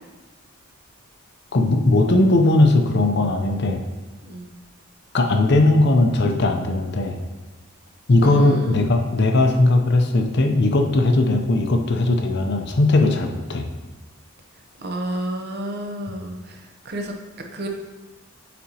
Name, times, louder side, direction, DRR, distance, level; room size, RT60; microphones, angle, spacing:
voice 1, 1.5-3.8 5.1-7.2 8.1-13.7, left 2 dB, 50° left, 4 dB, 0.5 m, -18 dB
voice 2, 8.2-8.9 14.8-16.6 16.8-17.1 17.5-17.7, equal, 45° right, 3 dB, 0.7 m, -30 dB
8.4 x 4.1 x 2.8 m, 1.2 s
head